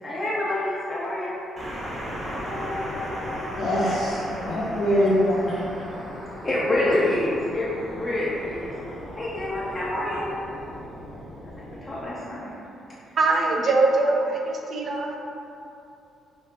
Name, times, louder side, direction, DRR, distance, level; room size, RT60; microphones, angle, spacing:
voice 1, 0.0-1.4 2.2-4.0 5.5-5.6 6.4-8.7 9.2-10.3 11.6-12.5, left 1 dB, 25° left, -8 dB, 0.5 m, -28 dB
sound 1, 1.6-12.0, equal, 25° right, 0.9 m, -37 dB
voice 2, 3.6-4.2 4.5-5.7, equal, 75° left, -9 dB, 0.6 m, -23 dB
voice 3, 13.2-15.2, right 3 dB, 50° right, 1 dB, 0.4 m, -22 dB
3.7 x 2.5 x 2.3 m, 2.8 s
cardioid pair, 90°, 0 cm